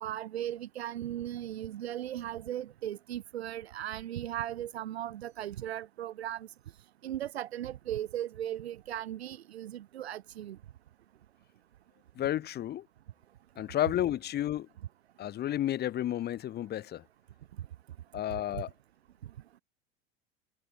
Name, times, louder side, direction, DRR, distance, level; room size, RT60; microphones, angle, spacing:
voice 1, 0.0-6.5 7.0-10.6, right 12 dB, 90° right, 2.2 m, -37 dB
voice 2, 12.2-12.8 13.6-14.7 15.2-17.0 18.1-18.7, left 12 dB, 35° left, 0.6 m, -31 dB
hypercardioid pair, 90°, 31 cm